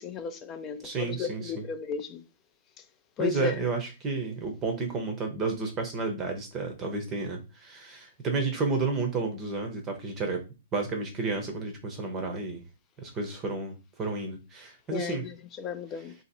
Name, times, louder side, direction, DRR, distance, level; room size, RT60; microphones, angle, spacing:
voice 1, 0.0-2.2 3.2-3.6 14.9-16.1, left 7 dB, 20° left, 0.4 m, -34 dB
voice 2, 0.8-1.6 3.2-10.4 10.7-12.6 13.0-15.3, right 4 dB, 20° right, 0.7 m, -31 dB
2.8 x 2.8 x 4.1 m
hypercardioid pair, 160°, 0 cm